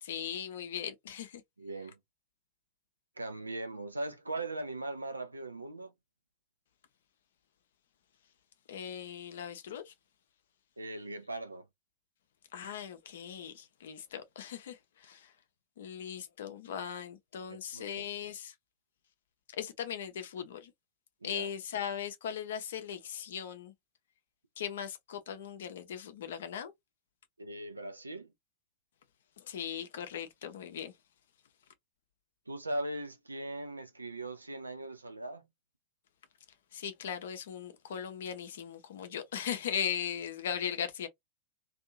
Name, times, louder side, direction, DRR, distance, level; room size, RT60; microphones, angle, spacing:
voice 1, 0.0-1.4 8.7-9.9 12.5-15.3 15.8-18.5 19.5-20.7 21.2-23.7 24.6-26.7 29.4-30.9 36.7-41.1, left 8 dB, 60° left, 0.6 m, -39 dB
voice 2, 1.6-2.0 3.2-5.9 10.8-11.7 17.7-18.0 21.2-21.5 27.4-28.3 32.5-35.5, right 2 dB, 80° right, 0.5 m, -39 dB
2.6 x 2.4 x 2.5 m
figure-of-eight pair, 90°, 0 cm